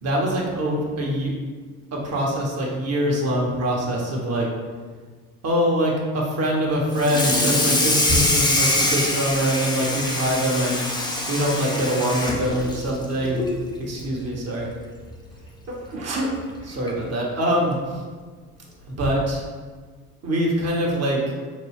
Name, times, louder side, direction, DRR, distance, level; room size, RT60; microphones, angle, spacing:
voice 1, 0.0-1.3 1.9-4.5 5.4-10.8 11.3-13.4 13.8-14.7 15.7-18.1 18.9-19.4 20.2-21.2, equal, 35° right, -2 dB, 1.1 m, -24 dB
Water tap faucet / Sink (filling or washing), 6.9-13.6 14.0-14.2 14.6-14.7 15.1-15.2 16.3-16.4 16.9-17.1, left 1 dB, 10° left, 0.6 m, -24 dB
5.2 x 2.2 x 3.5 m, 1.5 s
hypercardioid pair, 75°, 45 cm